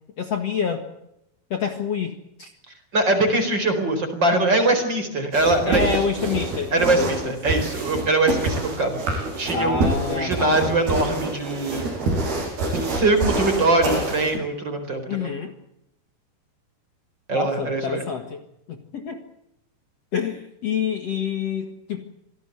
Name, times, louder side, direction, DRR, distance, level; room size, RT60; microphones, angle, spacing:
voice 1, 0.2-0.9 1.5-2.5 5.7-7.3 9.5-10.7 15.1-15.5 17.3-18.4 18.7-19.2 20.1-22.0, left 6 dB, 50° left, 5 dB, 2.4 m, -27 dB
voice 2, 2.9-5.9 6.7-12.0 12.9-15.3 17.3-18.0, right 2 dB, 30° right, 7 dB, 4.8 m, -22 dB
sound 1, 5.3-14.4, right 2 dB, 80° right, 8.2 m, -26 dB
26.5 x 18.0 x 8.1 m, 0.84 s
omnidirectional pair, 4.4 m